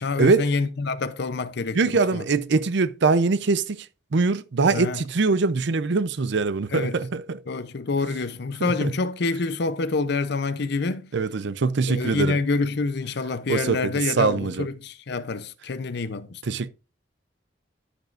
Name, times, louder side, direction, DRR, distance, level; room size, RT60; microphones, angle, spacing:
voice 1, 0.0-2.2 4.7-5.0 6.7-7.0 7.5-11.1 11.9-16.4, left 3 dB, 65° left, 0.6 m, -27 dB
voice 2, 1.7-3.8 4.1-7.4 8.6-8.9 11.1-12.4 13.5-14.7 16.5-16.7, right 4 dB, 70° right, 0.6 m, -22 dB
13.0 x 5.4 x 2.5 m
head